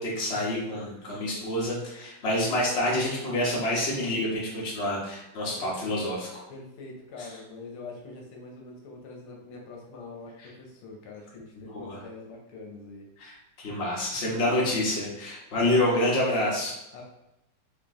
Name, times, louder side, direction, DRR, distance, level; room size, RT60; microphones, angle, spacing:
voice 1, 0.0-6.3 7.2-7.4 10.4-10.5 11.7-12.0 13.2-16.8, left 1 dB, 35° left, -5 dB, 1.3 m, -28 dB
voice 2, 6.5-13.1 16.9-17.0, left 3 dB, 80° left, 0 dB, 1.7 m, -44 dB
4.5 x 3.0 x 3.7 m, 0.89 s
omnidirectional pair, 2.4 m